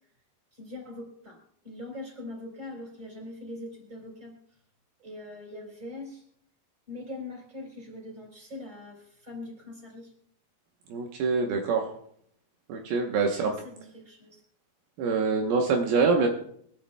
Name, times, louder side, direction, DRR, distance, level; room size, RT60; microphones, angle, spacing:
voice 1, 0.5-1.4 1.6-4.3 5.0-6.2 6.9-10.1 13.4-14.4, left 2 dB, 10° right, -1 dB, 3.9 m, -42 dB
voice 2, 10.9-11.9 12.7-13.5 15.0-16.3, right 4 dB, 75° right, 2 dB, 2.8 m, -25 dB
24.0 x 13.0 x 2.2 m, 0.67 s
omnidirectional pair, 4.5 m